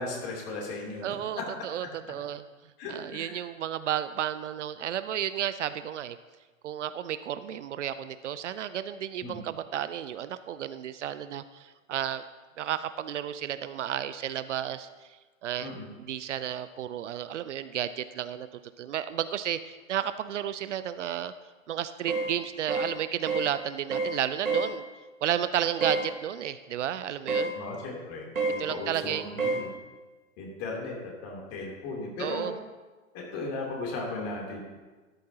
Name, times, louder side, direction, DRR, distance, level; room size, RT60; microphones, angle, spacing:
voice 1, 0.0-1.4 2.8-3.3 9.2-9.4 15.6-15.9 27.5-28.2 28.5-29.7 30.4-30.9 31.2-32.5 33.1-34.6, left 3 dB, 35° left, -2 dB, 3.2 m, -36 dB
voice 2, 1.0-2.4 2.9-6.2 6.6-12.2 12.6-14.9 15.4-15.7 16.1-18.5 18.8-21.3 21.7-24.8 25.2-27.5 28.6-29.3 32.2-32.5, right 10 dB, 60° right, 13 dB, 0.6 m, -32 dB
sound 1, 22.1-22.3 22.7-22.9 23.3-23.5 23.9-24.2 24.4-24.7 25.8-26.1 27.3-27.5 28.4-28.6 29.4-29.6, right 3 dB, 75° right, 2.1 m, -28 dB
13.0 x 10.5 x 2.9 m, 1.3 s
figure-of-eight pair, 110°, 40 cm